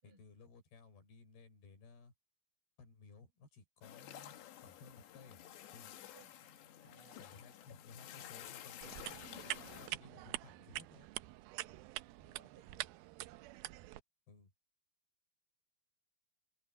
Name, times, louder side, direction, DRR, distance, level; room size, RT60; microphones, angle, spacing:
voice 1, 0.0-2.1 2.8-4.4 4.6-5.4 5.7-5.9 6.8-6.9 7.2-9.2 9.8-11.1 14.3-14.5, left 4 dB, 65° left, 6.6 m, -58 dB
sound 1, 3.8-9.9, left 11 dB, 80° left, 3.9 m, -52 dB
voice 2, 6.8-7.3 9.7-10.0 11.6-11.8 12.2-12.9, right 4 dB, 30° right, 7.2 m, -64 dB
sound 2, 8.8-14.0, right 18 dB, 85° right, 2.2 m, -45 dB
omnidirectional pair, 5.0 m